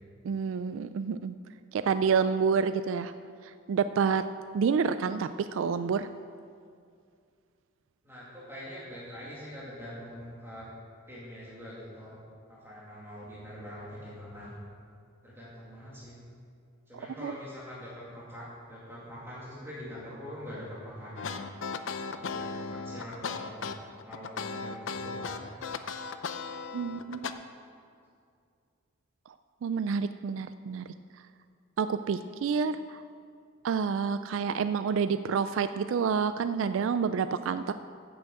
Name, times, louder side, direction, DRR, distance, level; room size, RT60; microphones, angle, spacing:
voice 1, 0.2-1.4 1.7-3.1 3.7-4.2 4.5-6.1 17.2-17.3 26.7-27.4 29.6-30.9 31.8-33.0 33.6-37.7, right 6 dB, 70° right, 11 dB, 0.3 m, -28 dB
voice 2, 8.0-10.7 11.1-12.2 12.5-14.5 15.2-16.2 16.9-21.5 22.2-23.7 24.0-25.5 26.5-26.6 26.8-27.1, equal, 10° right, -8 dB, 2.1 m, -44 dB
sound 1, 21.2-27.3, left 5 dB, 65° left, 0.6 m, -36 dB
10.0 x 7.0 x 7.6 m, 2.3 s
head